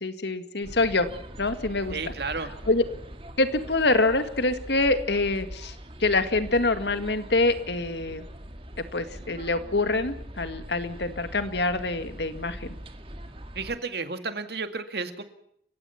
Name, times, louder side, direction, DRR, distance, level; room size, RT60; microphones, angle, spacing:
voice 1, 0.0-1.1 1.4-2.0 2.7-2.8 3.4-8.2 8.9-12.8, left 2 dB, 75° left, 10 dB, 2.0 m, -25 dB
sound 1, 0.6-13.8, right 1 dB, 30° right, 2.0 m, -42 dB
voice 2, 1.9-2.5 13.5-15.2, right 4 dB, 65° right, 9 dB, 2.1 m, -32 dB
30.0 x 16.5 x 5.9 m, 0.71 s
head